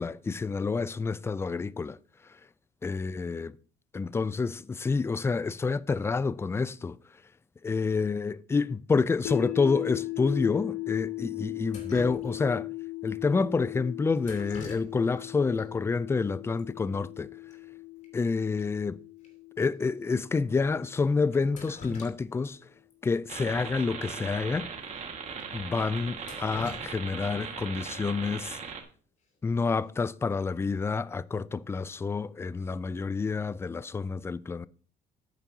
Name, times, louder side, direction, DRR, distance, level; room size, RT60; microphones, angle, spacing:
voice 1, 0.0-2.0 2.8-3.5 3.9-7.0 7.6-12.7 13.0-17.3 18.1-19.0 19.6-22.6 23.0-24.7 25.5-28.6 29.4-34.7, left 4 dB, 15° left, 0.3 m, -28 dB
sound 1, 9.3-21.4, left 21 dB, 75° left, 0.9 m, -38 dB
Drip, 11.7-12.7 14.2-15.2 15.5-15.6 16.6-16.7 16.9-17.2 17.5-17.6 18.0-18.1 18.6-18.7 19.2-19.3 20.0-20.2 21.3-22.5 22.9-23.0 24.3-24.4 24.8-24.9 25.4-25.5 26.0-27.6 29.6-29.9 30.3-30.7, left 3 dB, 45° left, 3.2 m, -45 dB
sound 2, 23.3-28.8, right 6 dB, 40° right, 1.8 m, -39 dB
10.5 x 9.0 x 2.8 m
cardioid pair, 110°, 17 cm